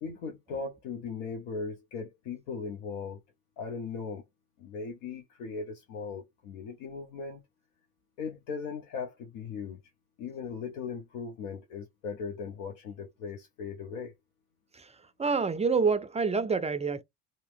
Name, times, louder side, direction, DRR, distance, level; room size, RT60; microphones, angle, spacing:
voice 1, 0.0-3.2 3.6-4.2 4.6-7.4 8.2-9.8 10.2-14.1, left 5 dB, 85° left, 0.8 m, -38 dB
voice 2, 15.2-17.0, right 5 dB, 15° right, 0.3 m, -27 dB
2.8 x 2.0 x 3.2 m
supercardioid pair, 65°, 43 cm